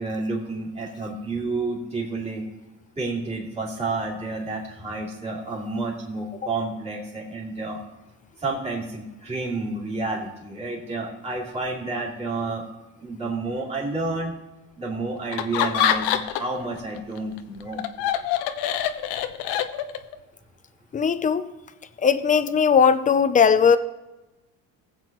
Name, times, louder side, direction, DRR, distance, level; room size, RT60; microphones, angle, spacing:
voice 1, 0.0-2.4 3.0-7.8 8.4-12.6 13.0-14.3 14.8-17.8, right 3 dB, 15° right, -5 dB, 2.9 m, -30 dB
Laughter, 15.3-16.6 17.0-20.2, left 10 dB, 80° left, 0.9 m, -25 dB
voice 2, 20.9-21.5 22.0-23.8, left 6 dB, 20° left, 11 dB, 0.5 m, -18 dB
20.0 x 8.0 x 3.0 m, 1.0 s
cardioid pair, 140°, 41 cm